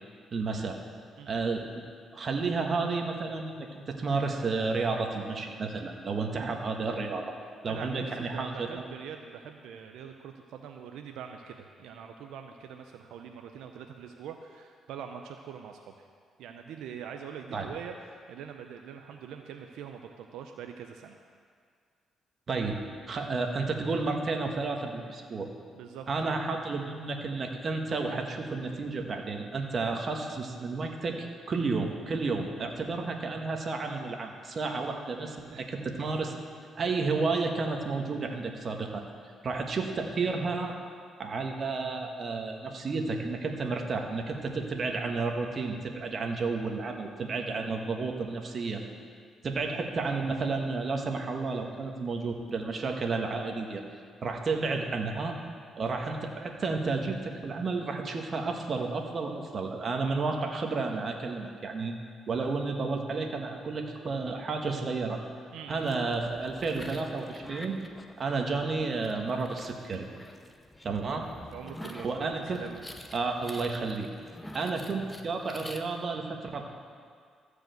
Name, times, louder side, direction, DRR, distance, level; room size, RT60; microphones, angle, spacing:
voice 1, 0.3-0.8 1.3-1.8 2.1-7.2 7.6-8.7 17.5-17.7 22.5-22.8 23.1-25.5 26.1-36.3 36.7-39.0 39.4-40.8 41.2-48.8 49.4-53.8 54.2-55.4 55.8-61.9 62.3-65.2 65.7-67.8 68.2-70.1 70.8-71.3 72.0-72.6 73.1-74.1 74.5-76.7, right 4 dB, 45° right, 3 dB, 1.3 m, -31 dB
voice 2, 7.6-16.1 16.4-21.2 25.8-26.1 35.5-35.6 60.1-60.4 65.5-65.9 71.5-72.8, right 8 dB, 85° right, 4 dB, 0.5 m, -43 dB
sound 1, 65.7-75.8, left 1 dB, 10° left, 0.8 m, -48 dB
13.5 x 4.9 x 7.8 m, 2.1 s
cardioid pair, 90°, 0 cm